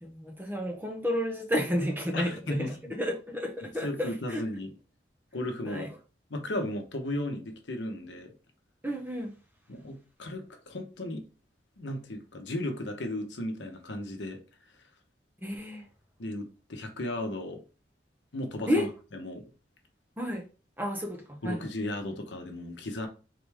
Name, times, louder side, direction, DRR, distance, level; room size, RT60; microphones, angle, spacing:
voice 1, 0.0-2.7 3.0-4.4 5.6-5.9 8.8-9.3 15.4-15.8 18.7-18.9 20.2-20.4 20.8-21.6, equal, 10° right, 0.8 m, -31 dB
voice 2, 2.1-2.9 3.8-4.7 5.3-5.9 6.3-8.3 9.7-11.2 11.8-14.4 16.2-17.6 18.3-18.9 19.1-19.5 21.4-23.1, left 1 dB, 75° left, 0.9 m, -35 dB
3.8 x 3.3 x 3.4 m
head